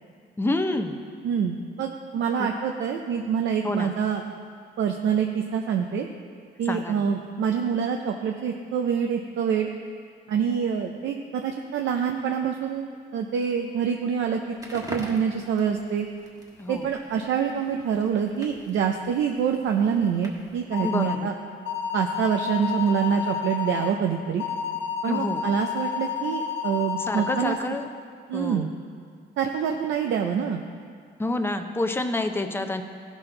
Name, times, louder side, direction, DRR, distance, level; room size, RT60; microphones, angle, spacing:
voice 1, 0.4-1.0 2.4-2.5 3.6-4.0 6.6-7.1 16.6-16.9 20.8-21.3 25.1-25.5 27.0-27.9 28.3-28.7 31.2-32.8, left 2 dB, 10° left, 6 dB, 0.7 m, -28 dB
voice 2, 1.2-4.2 4.8-6.1 6.6-9.7 10.3-12.9 13.1-16.1 16.7-21.3 21.9-24.4 25.0-27.6 28.3-28.7 29.4-30.6, right 7 dB, 75° right, 3 dB, 0.6 m, -26 dB
Crackle, 14.5-20.6, right 1 dB, 20° right, 1.3 m, -44 dB
sound 1, 20.7-21.2 21.7-23.9 24.4-27.6, left 7 dB, 70° left, 0.8 m, -30 dB
14.5 x 6.2 x 3.8 m, 2.1 s
cardioid pair, 90°, 20 cm